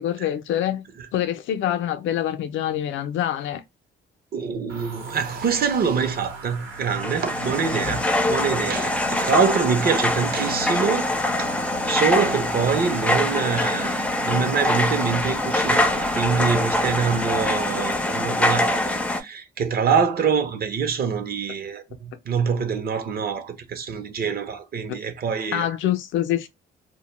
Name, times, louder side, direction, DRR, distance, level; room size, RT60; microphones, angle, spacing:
voice 1, 0.0-0.8 1.1-3.6 24.3-24.4 25.5-26.5, left 11 dB, 75° left, 0.5 m, -25 dB
voice 2, 4.3-11.1 11.4-25.7, right 6 dB, 50° right, 0.6 m, -25 dB
sound 1, 4.7-18.2, right 3 dB, 80° right, 0.9 m, -38 dB
sound 2, 6.8-19.2, left 1 dB, 5° left, 0.4 m, -24 dB
2.2 x 2.0 x 3.0 m
cardioid pair, 90°, 20 cm